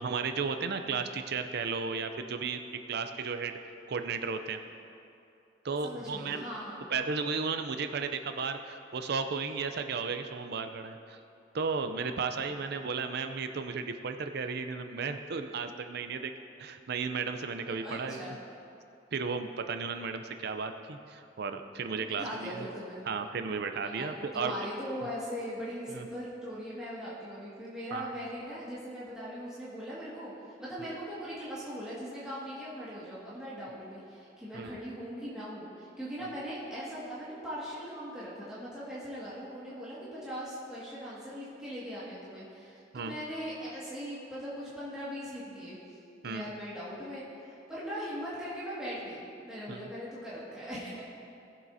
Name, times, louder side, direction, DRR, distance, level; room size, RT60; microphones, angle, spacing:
voice 1, 0.0-2.6 2.9-3.6 3.9-4.6 5.6-6.4 6.9-11.2 11.5-16.3 16.6-18.4 19.1-22.7 23.1-24.6 25.9-26.0 27.9-28.1 30.8-30.9 34.5-34.7 42.9-43.1 46.2-46.5 49.7-49.9, right 5 dB, 60° right, 7 dB, 0.5 m, -34 dB
voice 2, 5.8-6.9 17.7-18.3 22.0-23.0 23.8-30.3 30.6-45.8 46.2-51.0, equal, 5° right, -10 dB, 2.0 m, -40 dB
19.5 x 7.5 x 2.7 m, 2.6 s
head